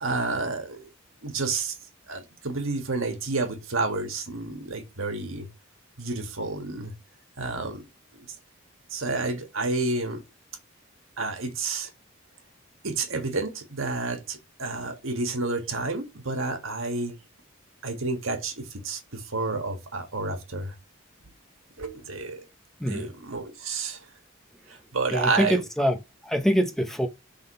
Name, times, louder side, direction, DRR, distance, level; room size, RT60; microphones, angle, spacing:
voice 1, 0.0-0.9 1.2-1.8 2.1-5.5 6.0-6.9 7.4-7.8 8.2-8.3 8.9-10.2 11.2-11.9 12.8-17.1 17.8-20.7 21.8-22.4 22.8-24.0 24.7-25.6, right 3 dB, 80° right, 1.6 m, -30 dB
voice 2, 25.1-27.1, equal, ahead, 0.7 m, -25 dB
5.9 x 3.8 x 5.4 m
head